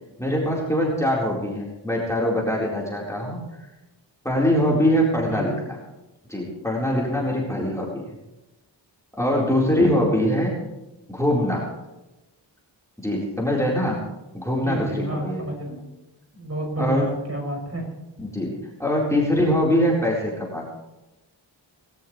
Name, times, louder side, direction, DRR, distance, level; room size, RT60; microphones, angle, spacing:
voice 1, 0.2-3.4 4.2-5.8 6.3-8.0 9.2-10.6 11.1-11.7 13.0-14.0 14.3-15.4 16.8-17.1 18.2-18.5 18.8-20.7, equal, 5° left, -4 dB, 4.2 m, -23 dB
voice 2, 14.6-15.8 16.3-17.8, right 1 dB, 35° right, -1 dB, 6.1 m, -30 dB
19.0 x 17.0 x 3.2 m, 1.0 s
wide cardioid pair, 65°, 46 cm